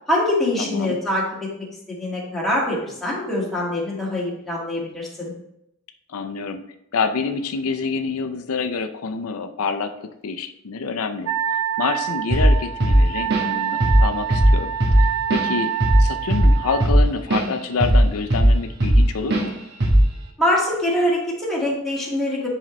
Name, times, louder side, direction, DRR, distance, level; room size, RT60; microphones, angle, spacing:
voice 1, 0.1-1.7 2.0-5.3 20.4-22.5, left 1 dB, ahead, -6 dB, 1.8 m, -24 dB
voice 2, 0.6-1.0 6.1-6.6 6.9-10.0 10.2-15.7 16.0-19.5, left 4 dB, 90° left, 7 dB, 0.5 m, -27 dB
Wind instrument woodwind instrument, 11.3-16.9, right 10 dB, 80° right, 0.5 m, -27 dB
Drum kit / Drum, 12.3-12.6 12.8-13.6 13.8-14.1 14.3-17.5 17.8-19.0 19.3-19.5 19.8-20.1, right 1 dB, 50° right, 1.3 m, -16 dB
10.0 x 3.9 x 3.1 m, 0.80 s
head